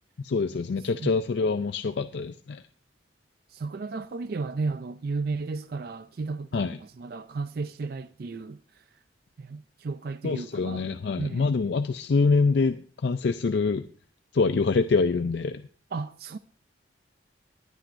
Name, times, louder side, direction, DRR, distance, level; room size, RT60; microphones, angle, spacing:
voice 1, 0.2-2.6 6.5-6.8 10.2-13.9 14.3-15.6, left 4 dB, 60° left, 0.4 m, -25 dB
voice 2, 3.5-8.8 9.4-10.9 11.2-11.5 15.9-16.4, right 4 dB, 50° right, 0.4 m, -34 dB
21.0 x 9.1 x 2.5 m
head